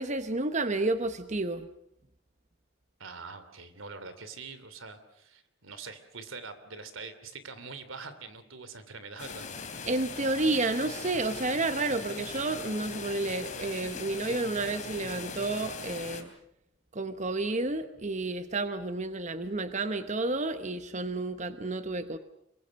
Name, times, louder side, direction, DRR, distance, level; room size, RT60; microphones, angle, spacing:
voice 1, 0.0-1.7 9.9-16.3 16.9-22.2, right 2 dB, 35° right, 10 dB, 1.0 m, -31 dB
voice 2, 3.0-9.5, right 4 dB, 85° right, 12 dB, 2.9 m, -44 dB
sound 1, 9.2-16.2, left 5 dB, 40° left, 3.3 m, -40 dB
27.0 x 23.5 x 6.5 m, 0.76 s
head